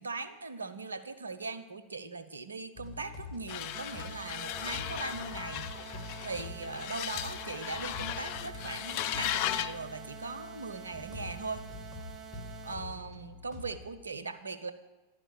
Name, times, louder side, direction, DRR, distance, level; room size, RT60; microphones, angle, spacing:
voice 1, 0.0-6.0 6.2-11.6 12.6-14.7, right 4 dB, 75° right, 12 dB, 0.6 m, -40 dB
sound 1, 2.7-13.9, left 2 dB, 30° left, 2.5 m, -46 dB
sound 2, 3.5-9.8, left 12 dB, 45° left, 0.4 m, -36 dB
sound 3, 3.7-12.7, right 7 dB, 25° right, 0.9 m, -48 dB
11.0 x 4.9 x 6.9 m, 1.2 s
figure-of-eight pair, 90°, 0 cm